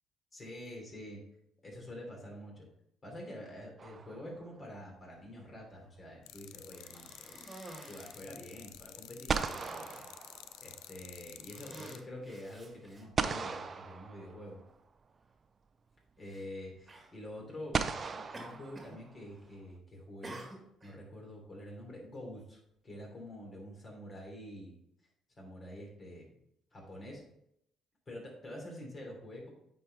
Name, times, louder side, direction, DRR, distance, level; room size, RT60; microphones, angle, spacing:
voice 1, 0.3-1.2 1.6-2.6 3.0-7.4 7.9-10.1 10.6-14.6 16.2-20.4 20.8-24.7 25.4-26.3 26.7-27.2 28.1-29.5, left 1 dB, 35° left, -1 dB, 2.9 m, -47 dB
sound 1, 3.8-4.7 8.7-8.8 9.3-11.0 13.2-14.8 16.1-16.2 17.7-19.4, right 5 dB, 40° right, 0.5 m, -37 dB
sound 2, 6.3-12.0, left 12 dB, 75° left, 0.3 m, -51 dB
Cough, 6.7-8.3 9.1-9.2 9.5-10.0 10.8-11.0 11.4-13.4 14.3-14.4 16.2-16.5 16.9-17.1 18.3-19.0 19.3-19.7 20.2-21.0, right 2 dB, 25° right, 1.7 m, -50 dB
8.8 x 4.5 x 3.3 m, 0.75 s
supercardioid pair, 60°, 0 cm